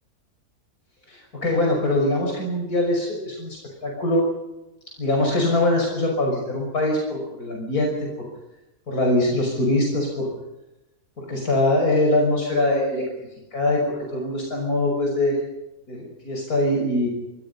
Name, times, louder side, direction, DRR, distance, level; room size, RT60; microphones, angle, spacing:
voice 1, 1.1-3.6 3.8-4.2 5.0-8.1 8.9-10.3 11.2-13.0 13.5-15.4 15.9-17.1, left 1 dB, 70° left, 0 dB, 6.4 m, -22 dB
27.5 x 25.0 x 5.6 m, 0.95 s
omnidirectional pair, 1.6 m